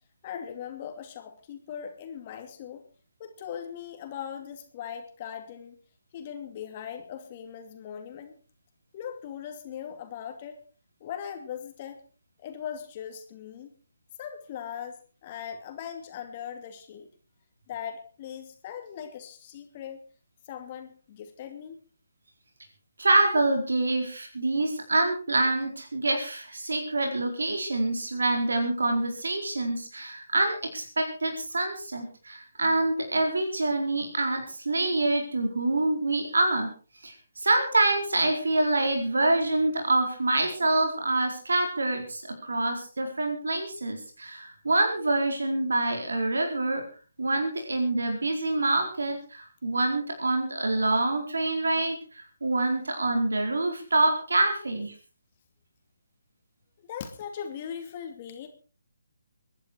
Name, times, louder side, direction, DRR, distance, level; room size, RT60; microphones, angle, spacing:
voice 1, 0.2-2.8 3.2-5.8 6.1-8.4 8.9-10.6 11.0-12.0 12.4-13.7 14.2-17.1 17.7-20.0 20.5-21.8 56.8-58.5, left 8 dB, 35° left, 5 dB, 2.6 m, -39 dB
voice 2, 23.0-36.7 37.0-46.8 47.2-54.9, right 2 dB, 75° right, 3 dB, 4.4 m, -26 dB
22.5 x 11.0 x 4.6 m, 0.37 s
figure-of-eight pair, 145°, 0 cm